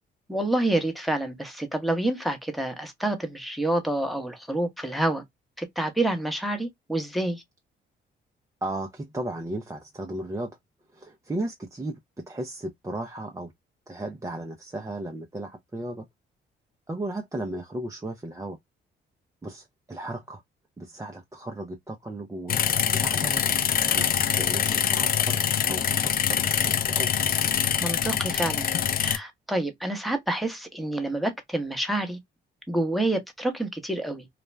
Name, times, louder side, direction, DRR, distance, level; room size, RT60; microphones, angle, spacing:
voice 1, 0.3-5.2 5.6-7.4 27.8-28.7 29.0-32.2 32.7-34.3, right 1 dB, ahead, 0.9 m, -28 dB
voice 2, 8.6-10.5 10.9-12.0 12.3-13.5 13.9-16.0 16.9-18.6 19.4-20.4 20.8-22.6 22.9-23.4 23.9-25.4 25.7-27.3, right 1 dB, 15° right, 0.5 m, -35 dB
sound 1, 22.5-29.2, left 8 dB, 50° left, 0.5 m, -24 dB
2.4 x 2.1 x 3.1 m
cardioid pair, 90°, 20 cm